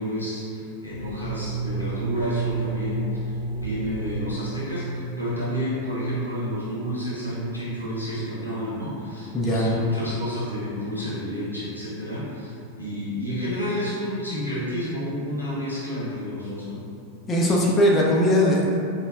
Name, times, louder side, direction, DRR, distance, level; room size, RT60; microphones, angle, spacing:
voice 1, 0.0-3.3 3.6-16.8, equal, 90° left, -9 dB, 1.0 m, -30 dB
sound 1, 0.9-8.6, right 3 dB, 85° right, 0.7 m, -32 dB
voice 2, 9.3-9.7 17.3-18.7, equal, 25° left, -4 dB, 0.5 m, -20 dB
4.9 x 2.1 x 2.4 m, 2.5 s
figure-of-eight pair, 90°, 0 cm